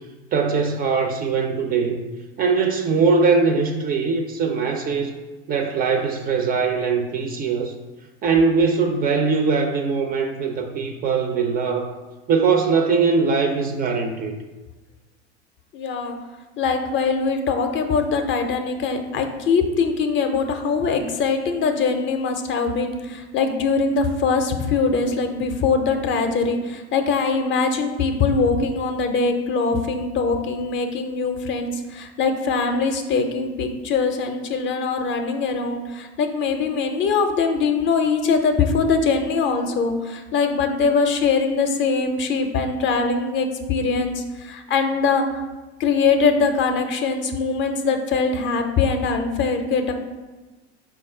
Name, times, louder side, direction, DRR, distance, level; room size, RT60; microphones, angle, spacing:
voice 1, 0.3-2.1 2.4-5.1 5.5-7.7 8.2-11.9 12.3-14.4, right 5 dB, 30° right, 5 dB, 0.4 m, -21 dB
voice 2, 15.7-16.2 16.6-45.4 45.8-49.9, left 4 dB, 35° left, 5 dB, 0.5 m, -22 dB
4.6 x 2.3 x 4.2 m, 1.2 s
hypercardioid pair, 90°, 33 cm